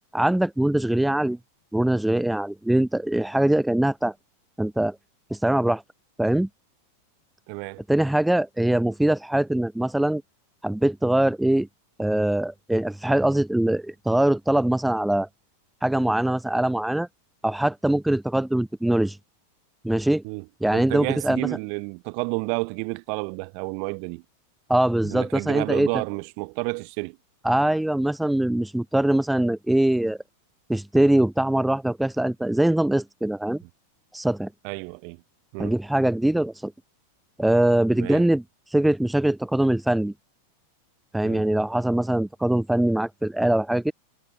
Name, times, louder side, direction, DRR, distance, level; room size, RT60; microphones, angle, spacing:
voice 1, 0.1-1.4 1.7-4.1 4.6-5.0 5.3-5.8 6.2-6.5 7.9-10.2 10.6-11.7 12.0-15.3 15.8-17.1 17.4-19.2 19.8-20.2 20.6-21.5 24.7-25.9 27.4-30.2 30.7-33.6 34.1-34.5 35.6-36.7 37.4-38.4 38.7-40.1 41.1-43.9, right 1 dB, 5° right, 0.5 m, -22 dB
voice 2, 7.5-7.8 20.2-20.4 20.7-24.2 25.0-27.2 34.6-35.2 35.5-35.7 38.0-38.3 41.2-41.5, right 40 dB or more, 45° right, 3.1 m, -31 dB
figure-of-eight pair, 90°, 0 cm